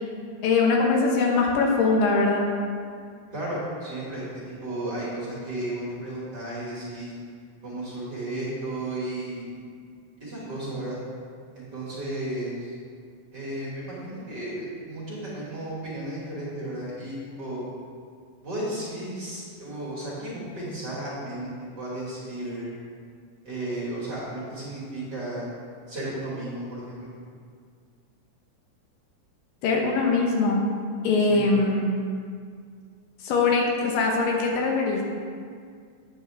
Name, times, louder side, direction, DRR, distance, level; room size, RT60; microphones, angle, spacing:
voice 1, 0.4-2.5 29.6-30.6 31.0-31.8 33.2-35.0, left 3 dB, 85° left, 0 dB, 2.9 m, -22 dB
voice 2, 3.3-7.1 7.6-9.6 10.2-11.0 11.5-12.7 13.3-17.6 18.4-22.7 23.4-25.5 25.9-27.1 31.3-31.4, right 1 dB, 35° right, -7 dB, 2.3 m, -34 dB
9.4 x 8.5 x 3.5 m, 2.1 s
omnidirectional pair, 3.8 m